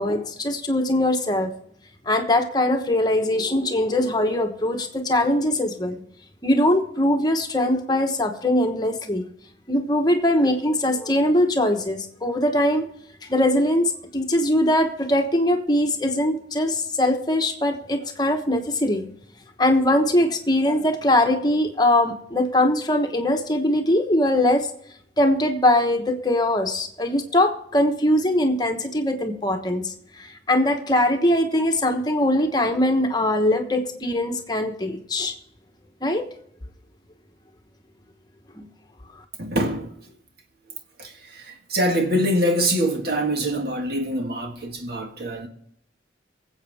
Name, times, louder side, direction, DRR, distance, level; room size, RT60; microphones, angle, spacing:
voice 1, 0.0-1.5 2.0-6.0 6.4-9.3 9.7-12.9 13.2-19.1 19.6-24.7 25.2-35.3 36.0-36.3 38.5-38.7, left 1 dB, 20° left, 1.1 m, -21 dB
voice 2, 39.4-40.1 40.7-45.5, equal, 55° right, 1.8 m, -25 dB
24.0 x 8.1 x 3.5 m
head